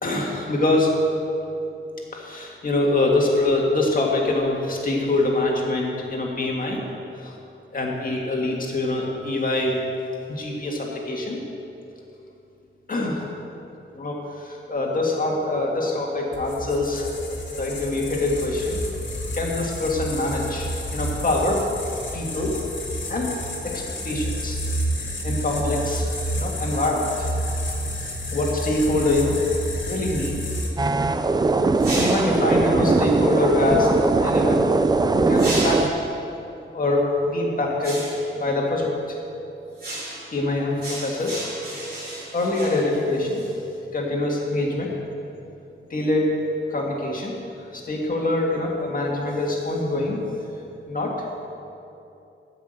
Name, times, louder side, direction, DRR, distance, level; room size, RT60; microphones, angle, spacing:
voice 1, 0.0-0.9 2.1-6.8 7.2-7.3 7.7-9.7 10.3-11.4 12.9-13.2 13.9-17.1 17.6-18.8 19.3-21.6 22.1-22.6 23.1-23.4 23.6-24.6 25.2-27.1 28.3-29.4 29.9-30.4 32.0-33.9 34.2-34.7 35.1-35.9 36.7-38.0 38.4-39.2 40.3-41.4 42.3-43.4 43.9-44.9 45.9-47.3 47.7-50.2 50.9-51.2, left 2 dB, 40° left, -1 dB, 1.8 m, -24 dB
sound 1, 16.3-30.7, equal, 60° left, 2.1 m, -30 dB
sound 2, 30.8-35.9, right 3 dB, 20° right, 0.4 m, -20 dB
sound 3, 31.8-32.5 35.3-36.1 37.8-38.3 39.8-40.4 40.8-43.5, right 1 dB, 45° right, 3.1 m, -33 dB
13.0 x 5.9 x 8.0 m, 2.8 s
wide cardioid pair, 180°, 21 cm